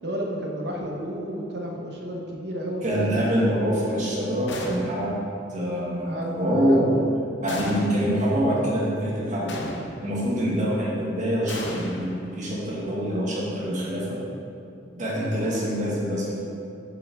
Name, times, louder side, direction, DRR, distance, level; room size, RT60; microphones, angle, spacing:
voice 1, 0.0-3.5 6.0-7.1, equal, 65° right, 0 dB, 1.1 m, -32 dB
voice 2, 2.8-5.2 5.5-6.9 7.4-9.5 10.0-12.1 12.4-14.2 14.9-16.4, equal, 40° right, -6 dB, 1.9 m, -25 dB
sound 1, 4.5-5.2 7.5-8.3 9.5-10.3 11.5-12.7, left 2 dB, 75° left, 0.8 m, -36 dB
7.2 x 7.1 x 3.6 m, 2.6 s
head